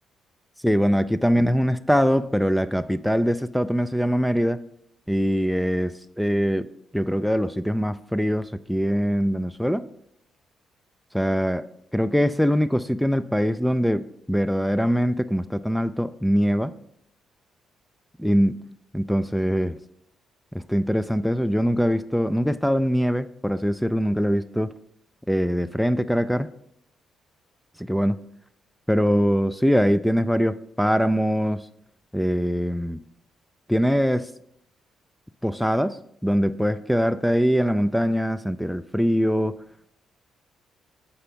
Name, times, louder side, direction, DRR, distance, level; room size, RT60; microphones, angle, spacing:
voice 1, 0.6-4.6 5.1-6.7 6.9-9.8 11.1-11.7 11.9-16.7 18.2-18.5 18.9-19.8 20.5-24.7 25.3-26.5 27.8-28.2 28.9-31.7 32.1-33.0 33.7-34.3 35.4-39.6, equal, ahead, 14 dB, 0.3 m, -22 dB
7.0 x 5.6 x 5.2 m, 0.73 s
cardioid pair, 90°, 0 cm